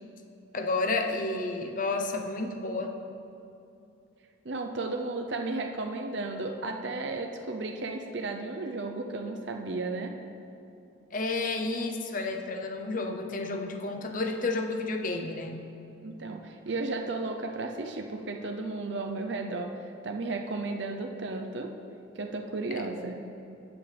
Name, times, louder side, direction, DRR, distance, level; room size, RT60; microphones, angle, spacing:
voice 1, 0.5-3.0 11.1-15.6 22.7-22.9, left 3 dB, 40° left, 4 dB, 0.7 m, -31 dB
voice 2, 4.4-10.2 16.0-19.7 20.0-21.7 22.2-23.1, right 3 dB, 65° right, 3 dB, 0.7 m, -34 dB
14.0 x 9.0 x 3.4 m, 2.7 s
head